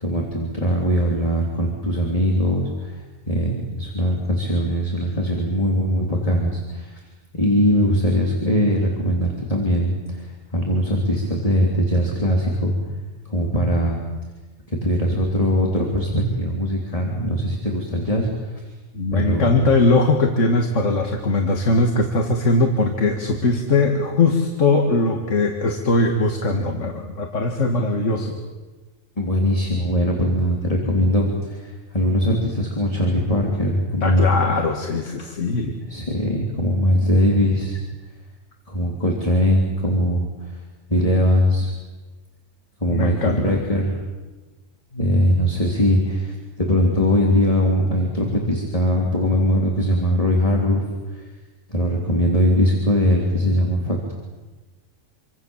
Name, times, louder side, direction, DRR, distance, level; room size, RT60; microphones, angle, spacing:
voice 1, 0.0-7.0 7.3-12.8 13.3-14.0 14.7-18.6 19.1-19.6 29.2-34.3 35.9-37.8 38.7-40.5 40.9-41.7 42.8-44.0 44.9-50.8 51.1-51.3 51.7-54.1, equal, 25° left, -1 dB, 3.5 m, -21 dB
voice 2, 18.9-28.3 34.0-35.8 42.9-43.5, left 3 dB, 70° left, 3 dB, 2.3 m, -20 dB
27.5 x 25.0 x 7.3 m, 1.3 s
omnidirectional pair, 1.3 m